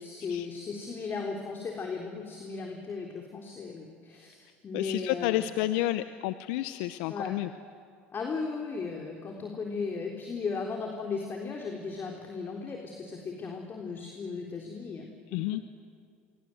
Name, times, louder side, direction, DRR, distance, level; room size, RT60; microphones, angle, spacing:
voice 1, 0.0-5.4 7.1-7.4 8.1-15.8, left 4 dB, 40° left, 1 dB, 3.8 m, -36 dB
voice 2, 4.7-7.5 15.3-15.6, left 15 dB, 75° left, 12 dB, 0.8 m, -30 dB
29.0 x 24.0 x 7.9 m, 2.2 s
hypercardioid pair, 75°, 6 cm